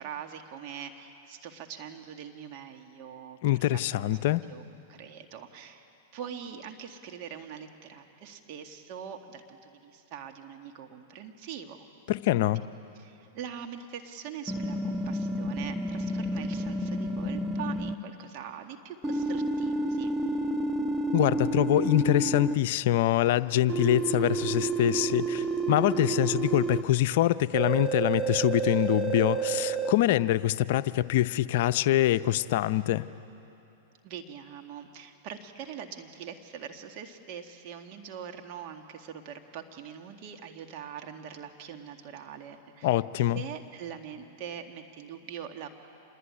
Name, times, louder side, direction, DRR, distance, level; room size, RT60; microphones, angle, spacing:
voice 1, 0.0-4.6 4.9-5.8 6.1-11.9 13.0-20.1 34.0-43.0 43.3-45.7, right 8 dB, 50° right, 4 dB, 1.9 m, -43 dB
voice 2, 3.4-4.5 12.1-12.6 21.1-33.1 42.8-43.4, left 14 dB, 60° left, 13 dB, 0.6 m, -25 dB
sound 1, 14.5-18.0 19.0-22.5 23.7-26.8 27.5-29.9, right 3 dB, 10° right, 1.2 m, -30 dB
27.0 x 21.0 x 9.8 m, 2.9 s
hypercardioid pair, 115°, 0 cm